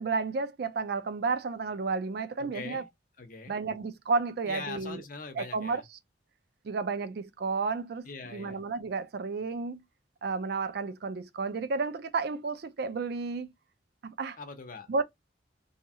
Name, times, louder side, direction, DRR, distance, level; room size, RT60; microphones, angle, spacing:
voice 1, 0.0-2.8 3.5-5.0 5.4-5.8 6.6-9.8 10.2-13.5 14.0-14.4 14.9-15.0, right 4 dB, 60° right, 0.4 m, -32 dB
voice 2, 2.4-2.9 3.2-3.6 4.5-5.8 8.0-8.6 14.4-14.9, left 4 dB, 50° left, 0.7 m, -42 dB
2.8 x 2.3 x 2.7 m
head